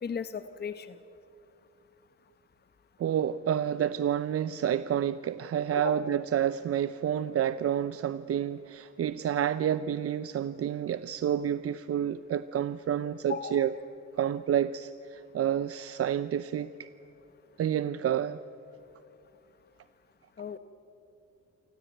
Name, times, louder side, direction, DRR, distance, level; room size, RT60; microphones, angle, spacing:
voice 1, 0.0-0.9 5.8-5.9 13.3-13.6 20.4-20.6, left 6 dB, 35° left, 11 dB, 0.9 m, -35 dB
voice 2, 3.0-13.7 14.2-16.9 17.6-18.4, right 9 dB, 50° right, 15 dB, 0.6 m, -29 dB
28.5 x 14.5 x 9.1 m, 2.8 s
cardioid pair, 90°, 30 cm